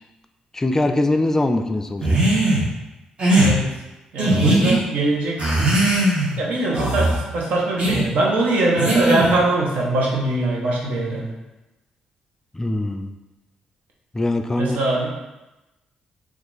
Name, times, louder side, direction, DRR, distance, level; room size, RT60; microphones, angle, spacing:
voice 1, 0.5-2.2 12.5-13.1 14.1-14.8, left 2 dB, 20° left, 7 dB, 0.3 m, -22 dB
sound 1, 2.0-2.6 3.2-3.5 4.2-4.8 5.4-6.3 6.7-7.2 7.8-8.0 8.8-9.4, right 1 dB, 40° right, 1.2 m, -18 dB
voice 2, 3.4-3.7 4.1-5.4 6.4-11.3 14.6-15.1, right 2 dB, 75° right, -2 dB, 0.8 m, -22 dB
2.9 x 2.4 x 3.9 m, 1.0 s
supercardioid pair, 65°, 3 cm